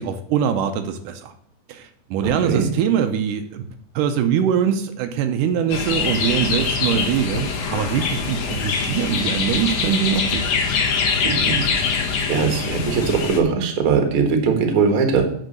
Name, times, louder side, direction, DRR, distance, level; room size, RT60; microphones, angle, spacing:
voice 1, 0.0-1.3 1.7-3.6 4.0-10.7, right 8 dB, 80° right, 7 dB, 2.2 m, -23 dB
voice 2, 2.2-2.7 11.2-11.6 12.3-15.3, right 5 dB, 50° right, 5 dB, 1.9 m, -20 dB
sound 1, 5.7-13.4, left 5 dB, 70° left, 2.7 m, -23 dB
8.2 x 5.1 x 6.5 m, 0.67 s
omnidirectional pair, 3.7 m